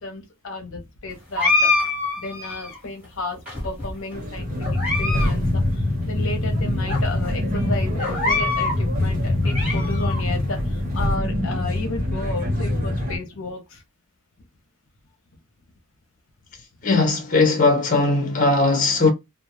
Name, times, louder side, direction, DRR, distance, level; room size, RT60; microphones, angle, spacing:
voice 1, 0.0-1.7 2.2-4.5 5.0-5.6 6.0-10.6 10.9-13.8, left 2 dB, 75° left, 0.7 m, -32 dB
sound 1, 1.4-2.8 3.5-4.1 4.6-5.3 5.6-5.7 6.4-6.5 6.9-7.0 8.0-8.8 9.3-10.2, left 3 dB, 10° right, 1.1 m, -24 dB
sound 2, 4.1-13.2, left 1 dB, 40° right, 1.0 m, -24 dB
voice 2, 16.8-19.1, left 3 dB, 40° left, 0.8 m, -19 dB
2.2 x 2.1 x 3.0 m
head